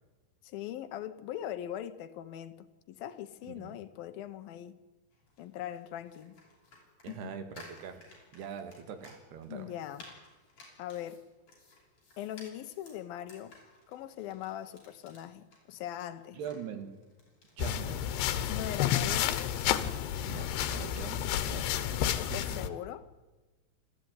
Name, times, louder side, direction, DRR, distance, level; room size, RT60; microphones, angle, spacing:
voice 1, 0.4-4.8 5.4-6.4 7.1-7.3 9.5-10.1 10.8-11.2 12.2-13.6 13.9-16.4 18.5-19.5 22.2-23.1, left 11 dB, 70° left, 10 dB, 2.7 m, -41 dB
sound 1, 5.1-22.6, left 2 dB, 45° left, 7.4 m, -58 dB
voice 2, 7.0-9.7 16.4-17.0 17.6-18.0 20.2-21.9 22.3-22.6, right 7 dB, 90° right, 9 dB, 3.9 m, -43 dB
sound 2, 17.6-22.7, left 10 dB, 90° left, 3.2 m, -31 dB
26.5 x 14.0 x 9.6 m, 1.2 s
omnidirectional pair, 4.6 m